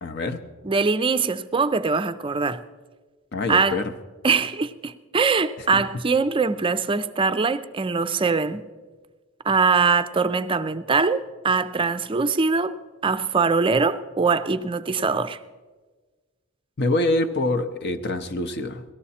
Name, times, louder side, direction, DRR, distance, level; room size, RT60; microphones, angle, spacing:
voice 1, 0.0-0.4 3.3-3.9 5.6-5.7 16.8-18.8, left 2 dB, 50° left, 0.7 m, -25 dB
voice 2, 0.6-2.6 3.5-3.8 4.2-8.6 9.4-12.7 13.0-15.4, right 4 dB, 25° right, 0.4 m, -22 dB
17.5 x 13.5 x 4.2 m
head